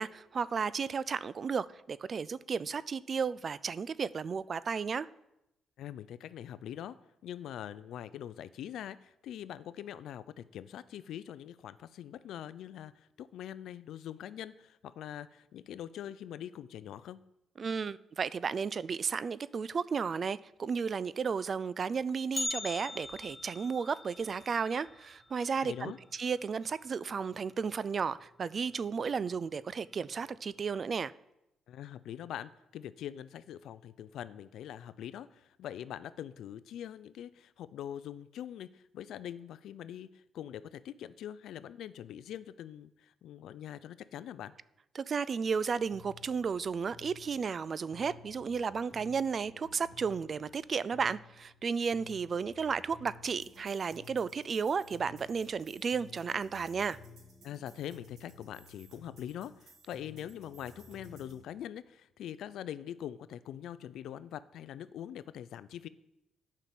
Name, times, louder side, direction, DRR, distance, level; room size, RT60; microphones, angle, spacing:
voice 1, 0.0-5.1 17.6-31.1 44.9-57.0, right 5 dB, 45° right, 0.4 m, -33 dB
voice 2, 5.8-7.0 7.2-17.2 25.6-26.0 31.7-44.5 57.4-65.9, left 10 dB, 75° left, 0.4 m, -43 dB
Bell, 22.3-26.4 26.7-26.8 27.3-27.4 28.2-28.3 29.1-29.3 29.7-29.8, left 3 dB, 15° left, 0.8 m, -42 dB
sound 1, 45.4-61.4, left 3 dB, 65° right, 3.0 m, -55 dB
8.9 x 5.7 x 7.7 m
cardioid pair, 90°, 0 cm